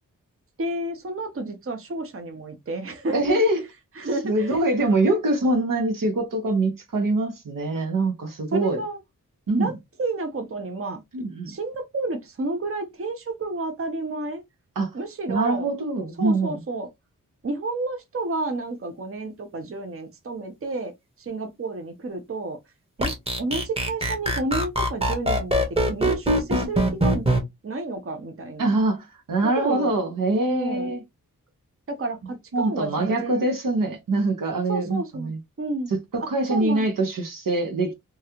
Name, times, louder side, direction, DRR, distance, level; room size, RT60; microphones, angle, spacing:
voice 1, 0.6-3.4 4.0-4.6 8.5-9.0 9.6-9.7 10.0-11.0 11.5-14.4 14.9-15.7 16.2-16.9 17.4-20.9 21.2-22.6 23.0-23.1 23.4-27.2 27.6-28.8 29.6-30.0 30.5-30.9 31.9-33.5 34.7-35.3 35.6-35.9 36.5-36.8, right 2 dB, 40° right, 0.8 m, -30 dB
voice 2, 3.1-3.6 4.2-8.8 9.5-9.7 11.1-11.6 14.8-14.9 15.3-16.6 28.6-31.0 32.5-35.4 36.1-37.9, right 2 dB, 75° right, 1.0 m, -24 dB
sound 1, 23.0-27.4, right 1 dB, 20° right, 1.1 m, -22 dB
3.1 x 2.4 x 2.8 m
cardioid pair, 60°, 33 cm